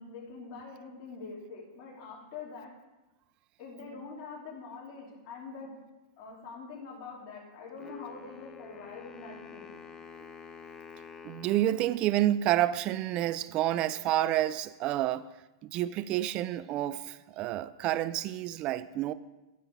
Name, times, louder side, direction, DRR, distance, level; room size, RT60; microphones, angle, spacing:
voice 1, 0.0-2.7 3.6-5.7 6.2-9.7, left 4 dB, 40° left, -5 dB, 2.9 m, -44 dB
Wind instrument woodwind instrument, 7.8-12.8, left 6 dB, 20° left, 0.6 m, -49 dB
voice 2, 11.2-15.3 15.6-19.1, right 13 dB, 35° right, 16 dB, 0.3 m, -29 dB
12.5 x 5.5 x 4.7 m, 1.1 s
hypercardioid pair, 135°, 3 cm